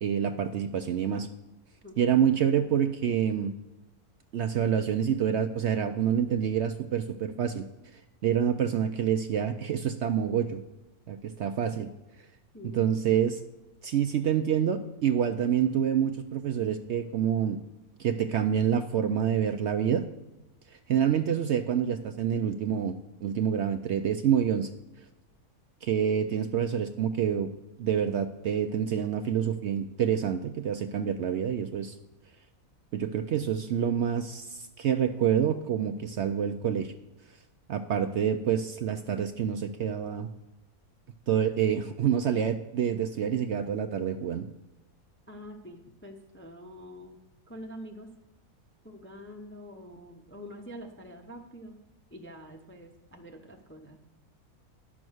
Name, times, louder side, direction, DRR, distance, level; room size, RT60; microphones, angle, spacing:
voice 1, 0.0-1.3 2.0-3.5 4.3-7.7 8.2-10.6 11.1-11.9 12.6-13.4 13.8-17.6 18.0-20.1 20.9-22.9 23.2-24.7 25.8-27.5 27.8-32.0 32.9-36.9 37.7-40.3 41.3-44.5, right 8 dB, 70° right, 8 dB, 0.7 m, -27 dB
voice 2, 45.3-47.2 47.5-48.1 48.8-51.8 52.1-54.0, equal, 10° left, 2 dB, 0.6 m, -45 dB
11.0 x 6.2 x 6.3 m, 0.98 s
omnidirectional pair, 1.6 m